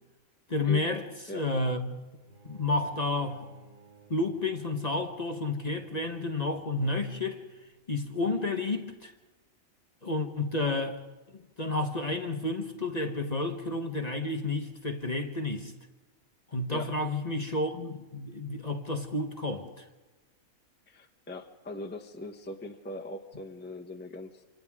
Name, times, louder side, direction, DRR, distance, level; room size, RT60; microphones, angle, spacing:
voice 1, 0.5-1.0 1.3-2.1 2.4-3.5 4.1-7.4 7.9-9.1 10.0-11.0 11.3-15.7 16.5-19.9, left 2 dB, 30° left, 5 dB, 1.1 m, -31 dB
Bowed string instrument, 2.2-7.5, right 2 dB, 35° right, 4.2 m, -56 dB
voice 2, 20.9-24.4, left 1 dB, 10° left, 3 dB, 0.9 m, -40 dB
27.5 x 26.0 x 3.6 m, 1.2 s
omnidirectional pair, 1.4 m